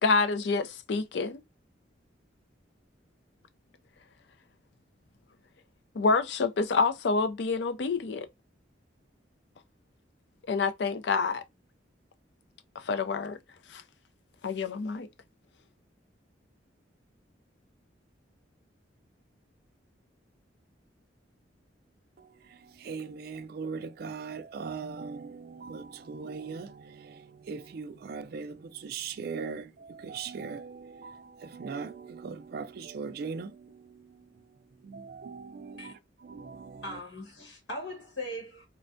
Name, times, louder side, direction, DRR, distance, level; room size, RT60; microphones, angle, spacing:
voice 1, 0.0-1.4 6.0-8.3 10.5-11.4 12.9-13.4 13.7-13.8 14.4-15.1, left 4 dB, 65° left, 0.4 m, -27 dB
voice 2, 22.2-34.3 34.8-37.0, right 5 dB, 55° right, 0.3 m, -40 dB
voice 3, 36.8-38.7, left 1 dB, 85° left, 1.3 m, -39 dB
4.2 x 2.2 x 2.5 m
head